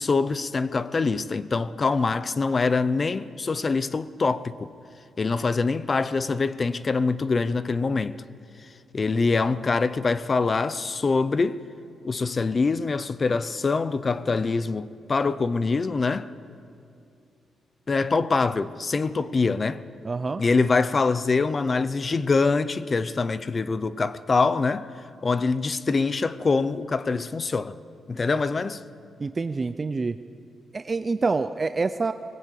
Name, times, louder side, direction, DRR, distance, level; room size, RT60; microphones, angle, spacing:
voice 1, 0.0-4.7 5.2-8.2 8.9-11.6 12.0-16.3 17.9-19.9 20.4-24.9 25.2-27.7 28.1-28.8, left 4 dB, 25° left, 0.6 m, -24 dB
voice 2, 20.0-20.4 29.2-30.2 30.7-32.1, right 4 dB, 25° right, 0.5 m, -26 dB
21.0 x 20.0 x 8.4 m
wide cardioid pair, 160°, 0 cm